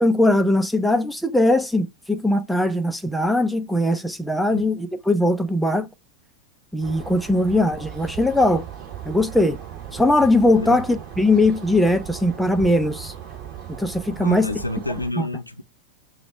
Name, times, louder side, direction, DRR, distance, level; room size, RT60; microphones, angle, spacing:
voice 1, 0.0-5.9 6.7-8.7 9.1-9.6 9.9-13.1 13.8-14.5 15.2-15.3, left 1 dB, ahead, 0.6 m, -20 dB
sound 1, 6.8-15.1, right 10 dB, 35° right, 2.7 m, -37 dB
voice 2, 14.2-15.6, left 1 dB, 85° left, 0.5 m, -29 dB
5.9 x 2.4 x 3.1 m
figure-of-eight pair, 90°, 0 cm